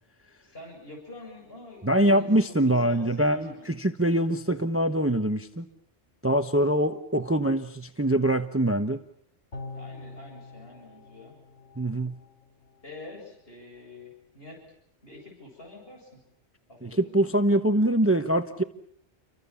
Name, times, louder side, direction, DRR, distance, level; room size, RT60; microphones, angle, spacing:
voice 1, 0.4-3.7 9.7-11.4 12.8-14.6 15.0-16.2 16.7-17.2, left 2 dB, 55° left, 0 dB, 7.9 m, -46 dB
voice 2, 1.8-5.7 6.2-9.0 11.8-12.2 16.8-18.6, right 1 dB, 15° right, 8 dB, 1.0 m, -24 dB
sound 1, 9.5-12.8 13.2-13.3, left 3 dB, 75° left, 4.4 m, -44 dB
30.0 x 24.5 x 7.1 m, 0.68 s
omnidirectional pair, 1.2 m